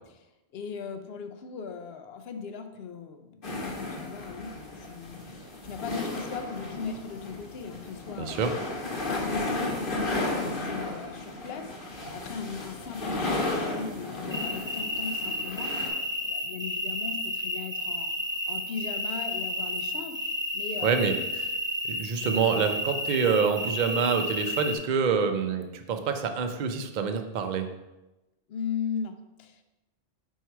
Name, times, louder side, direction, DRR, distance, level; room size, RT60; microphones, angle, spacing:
voice 1, 0.1-8.4 8.9-15.9 16.2-21.0 28.5-29.6, left 6 dB, 70° left, 7 dB, 0.8 m, -38 dB
sound 1, 3.4-15.9, left 2 dB, 55° left, 1.2 m, -34 dB
voice 2, 8.2-8.5 20.8-21.1 21.4-21.5 21.9-27.7, right 6 dB, 50° right, 6 dB, 0.6 m, -26 dB
sound 2, 14.3-24.8, left 1 dB, 10° right, 0.7 m, -32 dB
4.6 x 4.5 x 4.5 m, 0.99 s
omnidirectional pair, 1.1 m